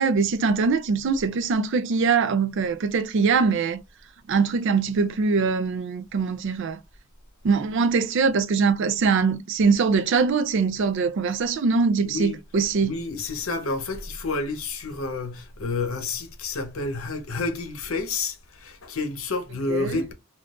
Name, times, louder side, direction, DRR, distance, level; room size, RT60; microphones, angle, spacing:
voice 1, 0.0-3.8 4.3-6.8 7.4-13.0 19.7-20.0, right 5 dB, 60° right, 0.4 m, -22 dB
voice 2, 12.0-12.4 12.8-20.1, left 3 dB, 80° left, 0.8 m, -29 dB
3.7 x 2.3 x 2.4 m
head